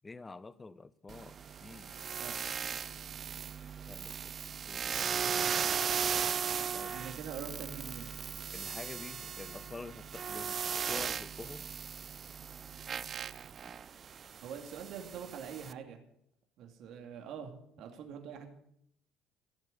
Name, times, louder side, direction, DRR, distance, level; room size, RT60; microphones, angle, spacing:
voice 1, 0.0-2.0 3.9-4.3 4.7-4.9 6.7-6.9 8.5-10.6 10.9-11.7, left 3 dB, 25° left, 0.7 m, -47 dB
sound 1, 1.1-15.7, right 7 dB, 45° right, 0.5 m, -37 dB
voice 2, 6.9-8.1 14.4-16.0 16.6-18.5, right 7 dB, 65° right, 2.8 m, -44 dB
16.0 x 7.5 x 9.8 m
hypercardioid pair, 65°, 0 cm